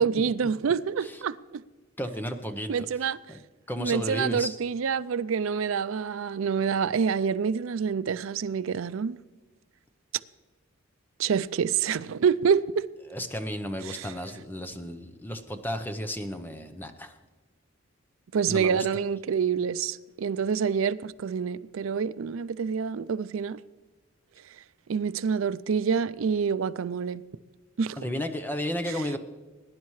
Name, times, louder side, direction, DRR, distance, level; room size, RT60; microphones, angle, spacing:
voice 1, 0.0-1.6 2.7-3.2 3.8-9.2 11.2-12.8 13.9-14.1 18.3-23.6 24.9-27.2 27.8-28.0, right 6 dB, 80° right, 0.4 m, -27 dB
voice 2, 2.0-3.4 3.7-4.5 13.1-17.1 18.5-18.9 28.0-29.2, equal, 10° left, 0.7 m, -33 dB
21.0 x 10.5 x 3.2 m
head